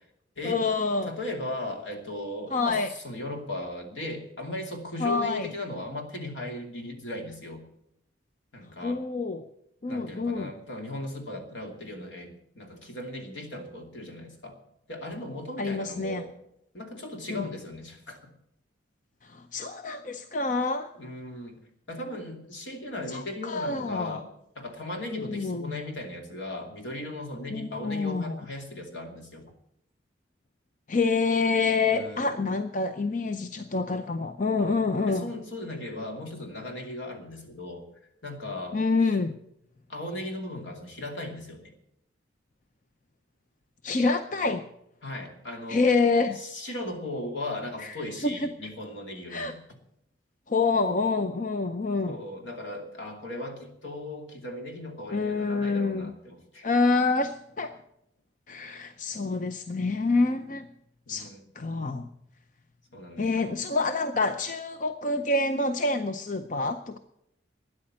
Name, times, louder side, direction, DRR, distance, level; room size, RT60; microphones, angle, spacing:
voice 1, 0.4-1.1 2.5-2.9 5.0-5.5 8.8-9.4 9.8-10.5 15.6-16.2 17.3-17.5 19.2-20.9 23.1-24.2 25.1-25.8 27.5-28.4 30.9-35.3 38.7-39.4 43.8-44.7 45.7-46.4 47.8-48.0 48.2-48.5 49.3-49.5 50.5-52.2 55.1-56.1 56.6-57.7 58.5-60.7 61.1-61.3 61.6-62.1 63.2-67.0, left 3 dB, 40° left, 9 dB, 0.6 m, -27 dB
voice 2, 1.0-7.6 8.5-9.0 9.9-14.6 14.9-16.3 16.7-18.3 21.0-21.6 21.9-24.3 24.6-29.5 31.9-32.4 34.6-37.9 38.2-38.8 39.9-41.7 45.0-45.9 46.4-49.6 52.0-56.7 61.1-61.4 62.9-63.7, left 1 dB, 75° left, 3 dB, 2.7 m, -37 dB
13.0 x 9.7 x 7.6 m, 0.79 s
head